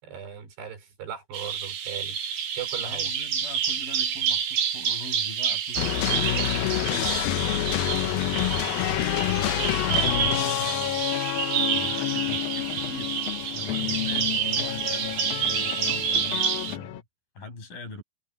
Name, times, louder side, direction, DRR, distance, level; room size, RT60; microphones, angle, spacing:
voice 1, 0.0-2.2 2.6-3.1, right 8 dB, 85° right, 6.7 m, -38 dB
Bird vocalization bird call bird song, 1.3-16.8, right 8 dB, 55° right, 3.4 m, -28 dB
voice 2, 2.8-7.6 8.0-11.1 11.7-17.0 17.4-18.0, left 3 dB, 55° left, 8.9 m, -42 dB
sound 1, 5.8-17.0, left 14 dB, 70° left, 2.5 m, -28 dB
omnidirectional pair, 4.7 m